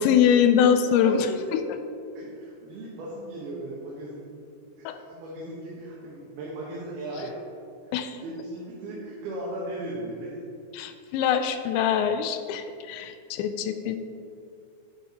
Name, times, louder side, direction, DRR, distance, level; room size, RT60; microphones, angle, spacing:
voice 1, 0.0-1.3 1.5-1.6 4.9-5.0 7.9-8.2 10.7-14.0, left 8 dB, 85° left, 9 dB, 2.7 m, -23 dB
voice 2, 0.6-1.5 2.1-4.3 4.8-7.3 8.2-10.4 13.2-13.3, right 1 dB, 65° right, -5 dB, 3.0 m, -37 dB
11.0 x 7.8 x 4.4 m, 2.4 s
omnidirectional pair, 5.2 m